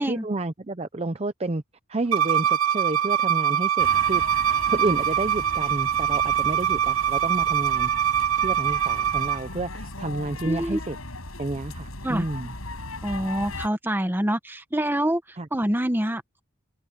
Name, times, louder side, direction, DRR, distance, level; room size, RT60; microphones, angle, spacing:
voice 1, 0.0-1.6 1.9-7.9 8.4-11.0 11.4-12.5 15.4-15.5, right 2 dB, 30° right, 0.6 m, -30 dB
Bowed string instrument, 2.1-9.4, right 9 dB, 80° right, 1.1 m, -23 dB
sound 1, 3.8-13.7, left 2 dB, 75° left, 8.0 m, -38 dB
voice 2, 10.4-10.8 12.0-12.3 13.0-15.2 15.5-16.4, right 1 dB, 10° right, 1.2 m, -26 dB
head